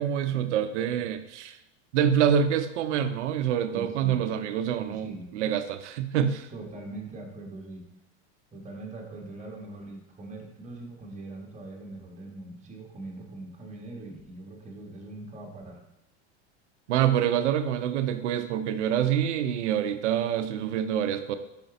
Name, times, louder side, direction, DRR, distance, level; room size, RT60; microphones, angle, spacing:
voice 1, 0.0-1.6 1.9-6.5 16.9-21.4, right 9 dB, 90° right, 10 dB, 0.6 m, -26 dB
voice 2, 3.6-4.2 4.7-5.3 6.5-7.8 8.5-15.8, right 2 dB, 20° right, -1 dB, 1.5 m, -42 dB
5.1 x 5.0 x 3.9 m, 0.85 s
supercardioid pair, 110°, 35 cm